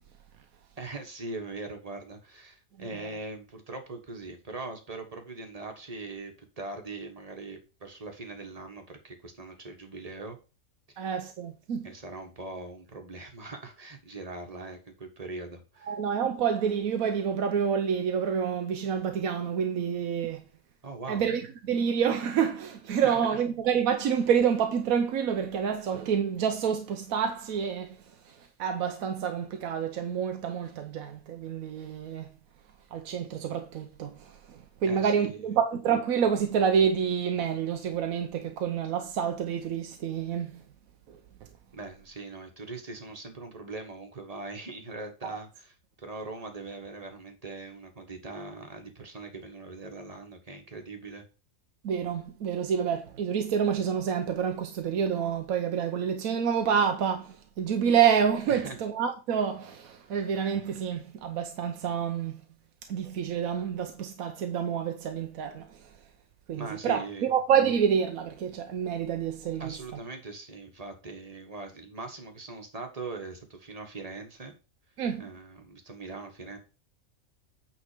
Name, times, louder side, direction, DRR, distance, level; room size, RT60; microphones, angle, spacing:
voice 1, 0.8-10.4 10.9-11.2 11.8-15.9 20.8-21.2 23.0-23.4 34.9-35.4 41.7-51.2 58.5-58.8 66.5-67.3 69.6-74.5 75.2-76.6, right 3 dB, 30° right, 1.4 m, -41 dB
voice 2, 11.0-11.9 15.9-20.4 21.1-28.0 28.3-32.3 32.9-40.5 41.1-41.2 45.2-45.4 51.8-62.4 62.9-65.6 66.5-69.7 75.0-75.3, right 7 dB, 85° right, 1.2 m, -28 dB
8.8 x 3.9 x 4.9 m
omnidirectional pair, 1.4 m